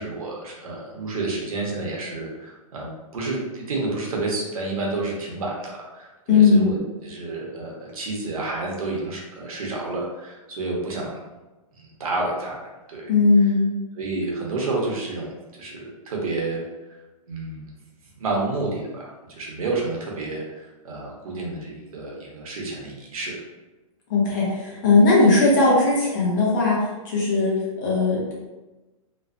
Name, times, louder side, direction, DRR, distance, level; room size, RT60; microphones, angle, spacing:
voice 1, 0.0-11.2 11.7-12.6 12.9-13.1 13.9-16.6 17.3-17.7 18.2-23.3, right 2 dB, 80° right, -2 dB, 0.9 m, -30 dB
voice 2, 6.3-6.7 13.1-13.7 24.1-26.8 27.0-28.4, left 3 dB, 35° left, -5 dB, 0.8 m, -18 dB
3.0 x 2.0 x 2.5 m, 1.1 s
hypercardioid pair, 170°, 18 cm